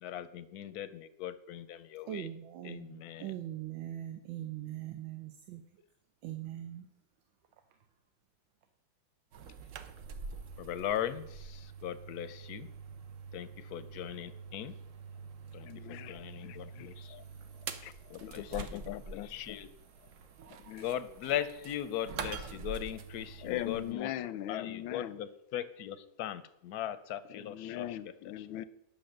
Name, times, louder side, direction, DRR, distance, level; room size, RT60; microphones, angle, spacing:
voice 1, 0.0-2.3 2.6-3.3 10.6-12.7 13.3-14.7 15.5-17.2 18.1-19.7 20.8-24.1 24.5-28.0 28.4-28.5, left 11 dB, 70° left, 1.0 m, -39 dB
voice 2, 2.1-5.8 6.2-6.9 7.5-7.8, right 12 dB, 90° right, 1.6 m, -42 dB
sound 1, 9.3-23.9, right 5 dB, 60° right, 0.8 m, -46 dB
voice 3, 15.6-17.2 17.8-17.9 18.2-19.6 20.6-20.9 23.4-25.2 27.3-28.6, left 13 dB, 85° left, 1.4 m, -40 dB
10.0 x 6.3 x 6.5 m
omnidirectional pair, 2.1 m